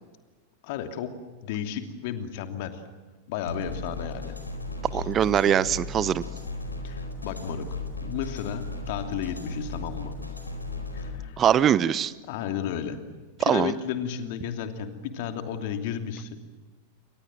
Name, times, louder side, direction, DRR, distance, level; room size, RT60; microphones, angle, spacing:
voice 1, 0.6-1.1 1.4-2.8 3.3-4.4 4.9-5.0 6.8-10.2 10.9-11.4 12.3-13.0 13.4-16.4, left 9 dB, 50° left, 7 dB, 2.9 m, -33 dB
sound 1, 3.5-11.1, left 2 dB, 85° left, 4.4 m, -36 dB
voice 2, 4.9-6.2 11.4-12.1 13.4-13.7, right 9 dB, 30° right, 19 dB, 0.9 m, -22 dB
29.5 x 25.0 x 7.6 m, 1.3 s
figure-of-eight pair, 90°, 0 cm